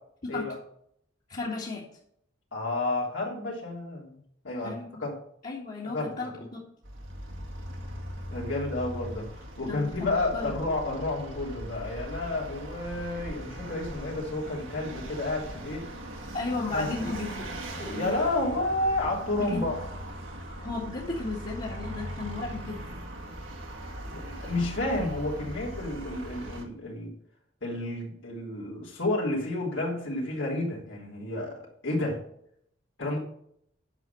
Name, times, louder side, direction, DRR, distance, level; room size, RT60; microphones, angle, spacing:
voice 1, 1.3-1.8 4.6-5.0 5.4-6.6 9.6-10.5 16.3-17.5 17.8-18.2 19.4-19.7 20.5-22.8, left 3 dB, 40° left, -6 dB, 2.0 m, -34 dB
voice 2, 2.5-4.2 4.4-4.7 5.0-5.1 5.8-6.1 8.3-9.3 9.6-15.9 16.7-17.1 17.9-19.8 24.1-27.1 27.6-32.2 33.0-33.2, left 2 dB, 75° left, -3 dB, 3.3 m, -31 dB
Vehicle, 6.8-26.6, equal, 80° right, 1.8 m, -40 dB
9.6 x 6.0 x 6.9 m, 0.69 s
head